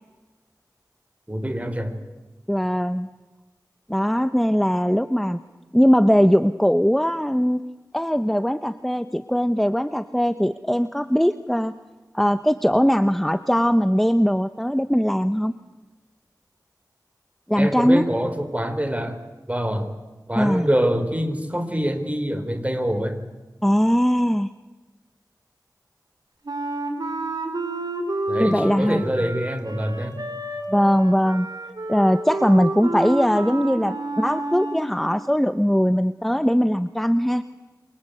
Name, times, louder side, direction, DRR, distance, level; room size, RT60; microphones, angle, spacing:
voice 1, 1.3-2.0 17.5-19.2 19.5-19.9 20.3-23.2 28.3-30.2, equal, 20° right, 8 dB, 4.0 m, -25 dB
voice 2, 2.5-3.1 3.9-5.4 5.7-7.6 7.9-11.7 12.1-15.5 17.5-18.1 20.3-20.7 23.6-24.5 28.4-29.0 30.7-31.5 31.9-37.4, equal, 5° left, 12 dB, 1.0 m, -20 dB
Wind instrument woodwind instrument, 26.4-34.9, right 2 dB, 65° right, 5.2 m, -30 dB
28.5 x 24.5 x 8.0 m, 1.2 s
wide cardioid pair, 55°, 7 cm